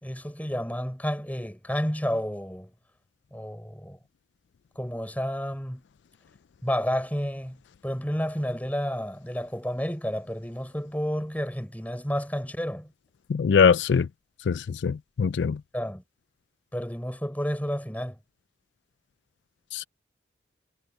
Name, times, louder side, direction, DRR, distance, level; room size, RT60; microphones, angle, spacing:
voice 1, 0.0-2.7 3.3-4.0 4.7-5.8 6.6-7.6 7.8-12.9 15.7-16.0 16.7-18.2, equal, 10° left, 5.0 m, -30 dB
voice 2, 13.3-14.1 14.5-14.6 14.8-15.6 19.7-19.8, left 6 dB, 75° left, 0.4 m, -21 dB
head